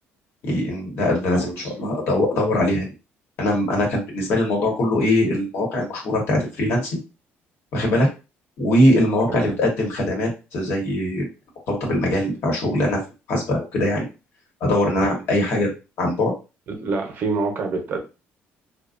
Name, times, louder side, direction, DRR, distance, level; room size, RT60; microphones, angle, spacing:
voice 1, 0.4-2.9 3.4-7.0 7.7-8.1 8.6-11.3 11.7-13.0 13.3-14.1 14.6-15.7 16.0-16.3, left 1 dB, 60° left, -1 dB, 1.1 m, -21 dB
voice 2, 16.7-18.0, right 3 dB, 50° right, 3 dB, 0.7 m, -26 dB
2.5 x 2.2 x 2.4 m, 0.29 s
cardioid pair, 145°, 5 cm